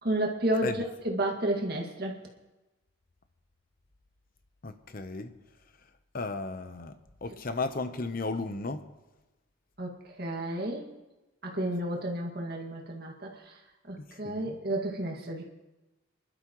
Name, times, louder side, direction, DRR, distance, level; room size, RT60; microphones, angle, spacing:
voice 1, 0.0-2.2 9.8-10.9 11.4-13.6 13.9-15.4, right 1 dB, 50° right, 0 dB, 2.0 m, -31 dB
voice 2, 4.6-5.3 6.1-6.9 7.2-8.9 14.0-14.6, left 3 dB, 45° left, 9 dB, 0.8 m, -35 dB
26.0 x 12.0 x 3.1 m, 1.1 s
head